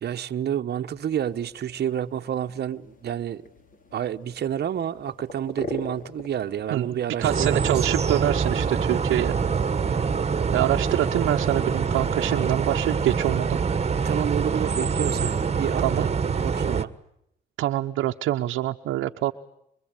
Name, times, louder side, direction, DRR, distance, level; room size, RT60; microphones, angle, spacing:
voice 1, 0.0-3.4 3.9-7.8 14.0-16.1 16.4-16.9, right 10 dB, 55° right, 1.1 m, -29 dB
sound 1, 0.9-13.8, left 1 dB, 45° left, 4.6 m, -45 dB
voice 2, 6.7-9.3 10.5-13.6 15.8-16.0 17.6-19.3, right 14 dB, 85° right, 1.0 m, -25 dB
sound 2, 7.2-16.8, right 6 dB, 35° right, 1.4 m, -25 dB
25.0 x 23.0 x 9.0 m
cardioid pair, 90°, 20 cm